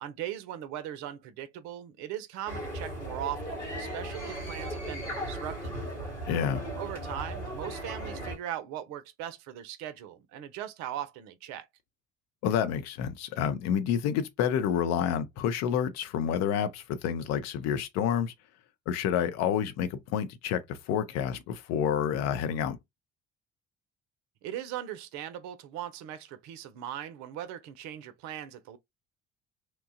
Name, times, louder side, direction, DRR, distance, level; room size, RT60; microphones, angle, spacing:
voice 1, 0.0-6.1 6.8-11.7 24.4-28.8, right 11 dB, 55° right, 0.6 m, -39 dB
sound 1, 2.5-8.4, right 1 dB, 85° left, 1.6 m, -37 dB
voice 2, 6.3-6.6 12.4-18.3 18.9-22.8, left 8 dB, 50° left, 0.6 m, -29 dB
2.9 x 2.2 x 2.6 m
figure-of-eight pair, 55°, 34 cm